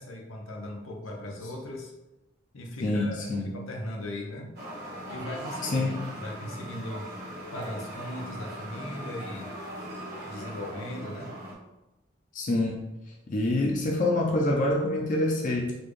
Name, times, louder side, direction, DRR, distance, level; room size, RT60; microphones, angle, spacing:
voice 1, 0.0-1.9 2.5-4.5 5.1-5.9 6.2-7.1 7.5-9.5 10.3-11.3, left 1 dB, 85° left, 1 dB, 0.7 m, -38 dB
voice 2, 2.8-3.6 5.6-6.0 12.3-12.8 13.3-15.8, left 1 dB, 40° left, -1 dB, 0.4 m, -26 dB
sound 1, 4.6-11.5, right 1 dB, 50° right, 0.9 m, -40 dB
4.2 x 2.3 x 3.1 m, 0.99 s
head